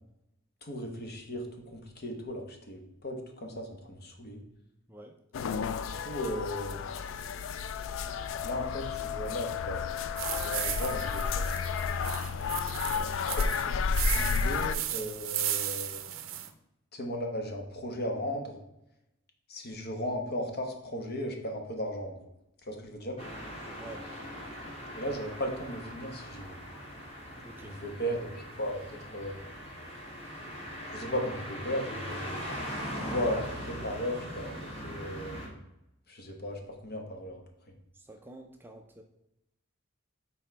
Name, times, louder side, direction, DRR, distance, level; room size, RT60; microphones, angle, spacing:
voice 1, 0.6-4.4 6.0-7.1 8.4-9.9 10.4-11.5 13.3-16.1 16.9-18.6 19.5-22.2 22.7-23.2 24.9-26.6 27.6-28.8 29.1-29.4 30.9-32.4 32.9-34.6 34.8-35.5 36.1-37.4, equal, 50° left, 3 dB, 1.0 m, -36 dB
sound 1, 5.3-14.8, left 6 dB, 65° left, 0.3 m, -32 dB
sound 2, 10.2-16.5, right 12 dB, 65° right, 0.5 m, -36 dB
sound 3, 23.2-35.5, equal, 30° left, 1.5 m, -41 dB
voice 2, 23.8-24.1 27.4-27.8 37.9-39.0, right 2 dB, 10° right, 3 dB, 0.4 m, -48 dB
6.0 x 4.1 x 4.4 m, 0.87 s
head